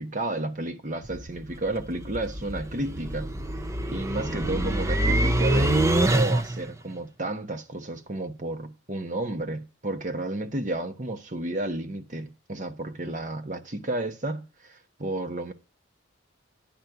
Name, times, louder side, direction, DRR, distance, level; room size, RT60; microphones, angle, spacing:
voice 1, 0.0-3.3 3.9-15.5, right 2 dB, 40° right, 1.2 m, -32 dB
sound 1, 1.0-6.7, right 1 dB, 15° right, 0.7 m, -26 dB
10.5 x 4.3 x 7.8 m
head